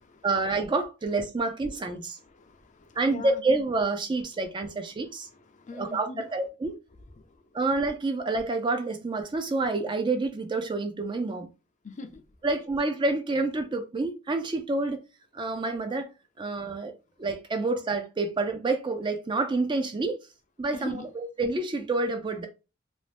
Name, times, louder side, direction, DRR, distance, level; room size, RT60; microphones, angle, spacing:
voice 1, 0.2-2.2 3.0-5.3 5.7-6.7 7.5-11.5 12.4-15.0 15.3-16.1 16.4-16.9 17.2-20.2 20.6-22.5, right 3 dB, 25° right, 0.4 m, -28 dB
voice 2, 2.2-3.4 5.0-6.3 7.2-7.6 11.8-12.2 20.7-21.1, left 3 dB, 40° left, 0.4 m, -42 dB
2.7 x 2.0 x 3.3 m
head